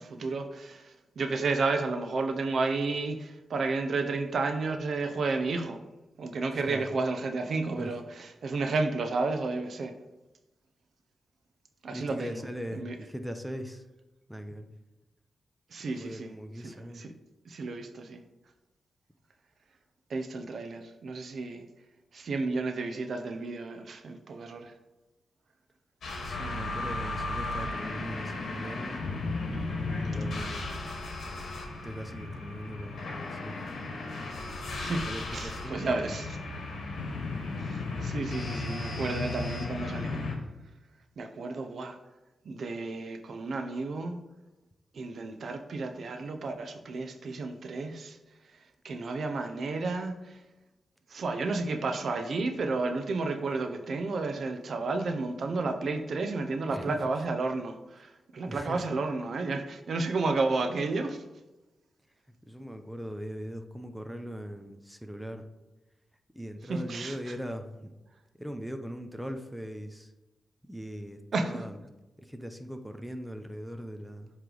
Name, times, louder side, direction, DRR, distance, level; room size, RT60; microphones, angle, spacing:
voice 1, 0.0-5.8 6.2-9.9 11.8-12.4 12.7-13.0 15.7-16.3 16.6-17.1 17.5-18.2 20.1-21.7 22.1-24.7 34.8-35.0 35.3-36.4 37.6-40.2 41.2-42.0 42.4-44.2 44.9-48.2 48.8-50.4 51.1-61.2 66.7-67.3 71.3-71.7, right 3 dB, 65° right, 0.6 m, -32 dB
voice 2, 6.5-6.8 7.7-8.0 11.9-13.8 14.3-14.7 16.0-17.0 26.2-29.0 30.1-30.8 31.8-33.6 34.8-36.3 37.0-37.1 56.7-57.0 58.5-58.9 62.5-65.5 66.3-67.9 68.4-70.1 70.6-71.8 72.2-74.3, equal, ahead, 0.6 m, -40 dB
sound 1, 26.0-40.4, left 2 dB, 75° left, 1.1 m, -35 dB
7.8 x 3.2 x 3.9 m
cardioid pair, 85°, 0 cm